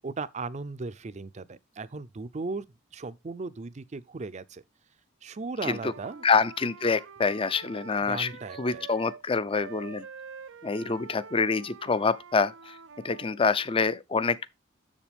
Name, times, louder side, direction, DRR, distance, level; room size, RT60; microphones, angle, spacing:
voice 1, 0.0-2.7 2.9-4.6 5.2-6.2 8.0-8.9, right 3 dB, 35° right, 0.5 m, -37 dB
Wind instrument woodwind instrument, 5.6-9.2 9.5-13.4, right 6 dB, 90° right, 0.6 m, -46 dB
voice 2, 6.2-8.3 8.6-10.0 10.6-12.8 13.0-14.5, left 4 dB, 30° left, 0.5 m, -26 dB
7.3 x 7.0 x 3.4 m
head